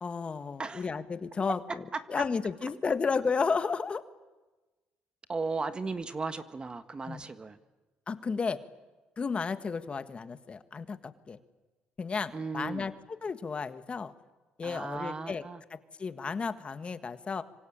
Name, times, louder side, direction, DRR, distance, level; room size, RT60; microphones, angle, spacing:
voice 1, 0.0-4.0 7.0-7.2 8.1-8.6 9.2-11.4 12.0-12.9 13.2-14.1 14.6-15.4 15.7-17.4, left 5 dB, 35° left, 11 dB, 1.6 m, -33 dB
voice 2, 5.3-7.6 12.3-12.9 14.6-15.6, right 4 dB, 30° right, 11 dB, 1.6 m, -36 dB
25.5 x 25.5 x 8.8 m, 1.2 s
cardioid pair, 85°, 3 cm